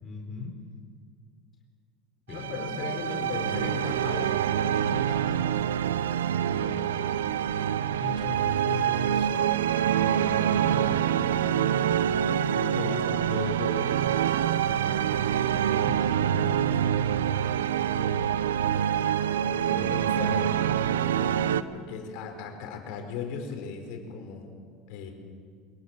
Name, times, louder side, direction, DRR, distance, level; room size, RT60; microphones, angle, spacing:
voice 1, 0.0-0.6 2.3-2.9 6.5-6.9 8.0-9.3 10.0-11.3 15.3-17.5 18.0-18.3 19.7-20.5, left 5 dB, 35° left, 1 dB, 4.1 m, -40 dB
voice 2, 2.3-5.4 6.5-6.6 6.9-7.0 12.5-14.0 16.8-17.0 19.9-20.5 21.7-24.5 24.9-25.1, left 5 dB, 65° left, 4 dB, 4.6 m, -37 dB
sound 1, 2.3-21.6, right 9 dB, 80° right, 0.8 m, -26 dB
23.5 x 21.5 x 7.5 m, 2.1 s
hypercardioid pair, 80°, 0 cm